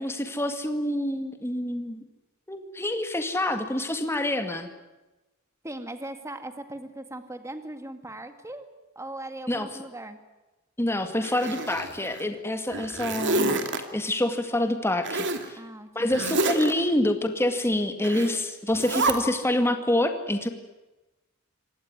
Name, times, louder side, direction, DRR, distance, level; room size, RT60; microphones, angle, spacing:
voice 1, 0.0-2.0 2.5-4.7 9.5-9.7 10.8-15.6 16.0-20.5, left 1 dB, 10° left, 7 dB, 2.1 m, -27 dB
voice 2, 5.6-8.7 9.0-10.2 15.6-16.1, right 1 dB, 15° right, 8 dB, 2.1 m, -39 dB
Zipper (clothing), 11.2-12.2 12.7-13.8 15.0-15.5 16.1-16.7 18.0-18.3 18.7-19.1, right 2 dB, 55° right, 2.7 m, -28 dB
25.5 x 19.0 x 9.7 m, 1.1 s
head